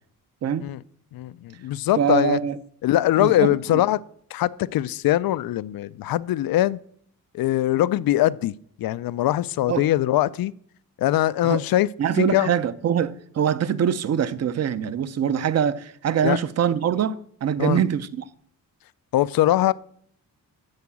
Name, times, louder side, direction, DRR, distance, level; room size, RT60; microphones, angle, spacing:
voice 1, 1.1-2.4 2.8-4.0 4.3-6.8 7.3-8.5 8.8-10.5 11.0-11.9 12.2-12.5 16.2-16.4 17.6-17.8 19.1-19.7, left 14 dB, 90° left, 0.5 m, -22 dB
voice 2, 2.0-2.6 3.2-3.8 9.7-9.8 11.4-11.6 12.0-18.3, right 8 dB, 50° right, 0.7 m, -23 dB
13.0 x 4.8 x 8.4 m
wide cardioid pair, 160°, 34 cm